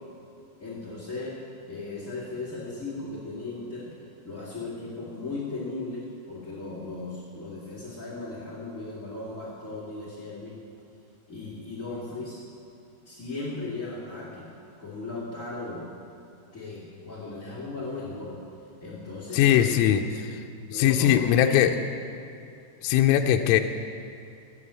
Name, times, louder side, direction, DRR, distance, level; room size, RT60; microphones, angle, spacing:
voice 1, 0.6-1.4 1.7-3.9 4.2-10.5 11.3-12.4 13.0-14.5 14.8-15.9 16.5-18.4 18.8-20.0 20.7-21.7, left 3 dB, 45° left, -7 dB, 1.0 m, -36 dB
voice 2, 19.3-20.0 20.7-21.7 22.8-23.6, left 11 dB, 90° left, 4 dB, 3.3 m, -20 dB
18.5 x 7.7 x 9.7 m, 2.5 s
omnidirectional pair, 5.8 m